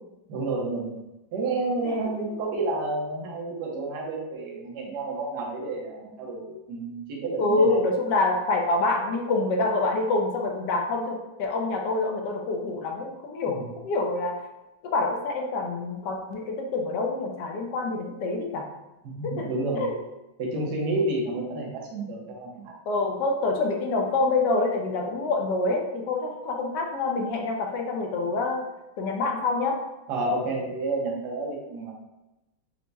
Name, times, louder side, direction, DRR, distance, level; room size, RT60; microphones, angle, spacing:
voice 1, 0.3-1.0 1.3-7.8 13.6-13.7 19.0-19.9 20.4-22.7 30.1-31.9, right 2 dB, 65° right, -2 dB, 1.4 m, -30 dB
voice 2, 7.4-14.4 14.8-18.7 19.2-19.5 19.7-19.9 22.9-28.6 29.0-29.8, left 3 dB, 70° left, 2 dB, 1.1 m, -26 dB
4.5 x 2.1 x 3.9 m, 0.98 s
omnidirectional pair, 2.1 m